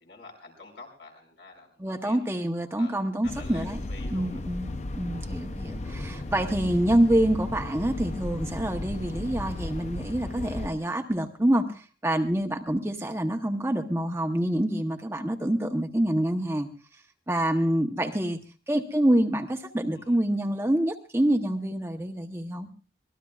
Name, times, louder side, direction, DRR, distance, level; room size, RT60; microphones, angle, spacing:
voice 1, 0.0-2.2 2.8-3.0 3.3-4.4 19.9-20.2, left 3 dB, 70° left, 2 dB, 5.1 m, -48 dB
voice 2, 1.8-3.8 4.1-16.7 17.3-18.4 18.7-22.7, right 1 dB, 15° right, 4 dB, 0.9 m, -26 dB
sound 1, 3.2-10.7, left 2 dB, 40° left, 0.6 m, -35 dB
24.5 x 18.5 x 2.4 m, 0.33 s
head